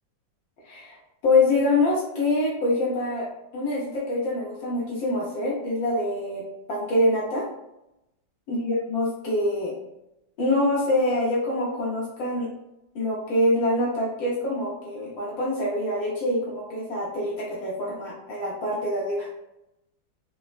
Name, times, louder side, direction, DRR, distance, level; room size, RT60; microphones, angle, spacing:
voice 1, 0.6-1.0 1.2-3.3 3.5-6.4 6.7-7.4 8.5-9.7 10.4-12.5 12.9-19.3, left 2 dB, 75° left, -5 dB, 1.4 m, -25 dB
4.0 x 2.1 x 2.3 m, 0.88 s
omnidirectional pair, 2.1 m